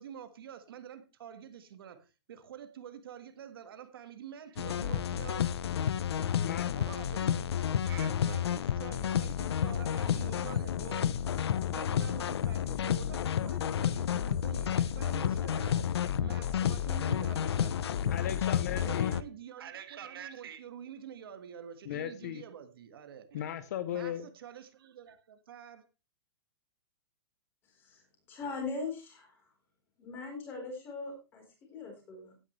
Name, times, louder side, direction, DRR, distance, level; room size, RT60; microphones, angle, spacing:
voice 1, 0.0-5.5 6.7-7.5 7.8-11.2 11.7-15.9 16.2-18.2 18.8-23.5 23.9-25.9, right 9 dB, 60° right, 1.6 m, -47 dB
sound 1, 4.6-19.2, left 9 dB, 70° left, 0.7 m, -31 dB
voice 2, 6.4-6.7 18.1-19.1 21.9-22.4 23.3-24.3, left 10 dB, 40° left, 0.7 m, -36 dB
voice 3, 28.3-29.4 30.0-32.4, left 4 dB, 15° left, 4.0 m, -40 dB
16.0 x 9.8 x 3.2 m
hypercardioid pair, 180°, 14 cm